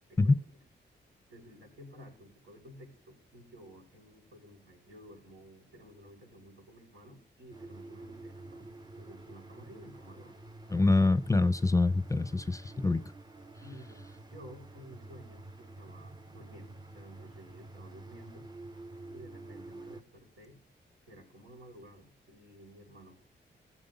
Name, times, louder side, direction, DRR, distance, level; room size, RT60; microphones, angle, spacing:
voice 1, 0.1-0.6 1.3-8.7 9.0-10.4 13.6-18.5 19.1-20.6 21.1-23.2, equal, 80° right, 6.6 m, -53 dB
sound 1, 7.5-20.0, right 2 dB, 20° right, 0.9 m, -49 dB
voice 2, 10.7-13.0, left 3 dB, 15° left, 0.7 m, -25 dB
17.0 x 7.5 x 3.9 m
cardioid pair, 75°, 20 cm